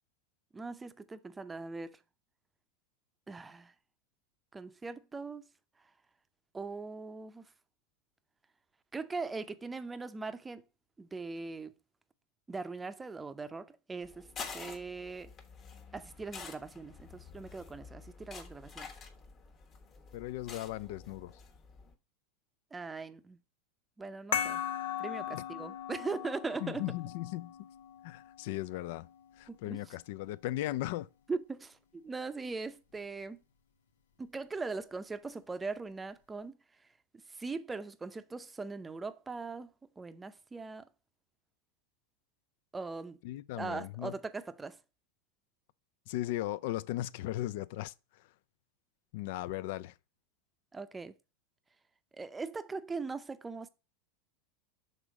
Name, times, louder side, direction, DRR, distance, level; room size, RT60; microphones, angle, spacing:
voice 1, 0.5-2.0 3.3-3.7 4.5-5.5 6.5-7.5 8.9-10.6 11.0-11.7 12.5-14.3 14.5-15.3 15.9-19.0 22.7-23.4 24.0-24.6 25.0-26.9 29.5-29.8 31.3-33.4 34.2-36.6 37.3-40.8 42.7-43.2 43.6-44.8 50.7-51.1 52.1-53.7, right 4 dB, 15° right, 0.6 m, -40 dB
sound 1, 14.0-21.9, left 5 dB, 35° left, 1.2 m, -48 dB
voice 2, 20.1-21.3 25.3-25.4 26.6-27.5 28.0-29.1 29.4-31.1 43.2-44.1 46.1-47.9 49.1-49.9, left 15 dB, 65° left, 0.4 m, -37 dB
sound 2, 24.3-29.4, left 9 dB, 90° left, 0.9 m, -39 dB
6.3 x 3.7 x 5.1 m
hypercardioid pair, 115°, 0 cm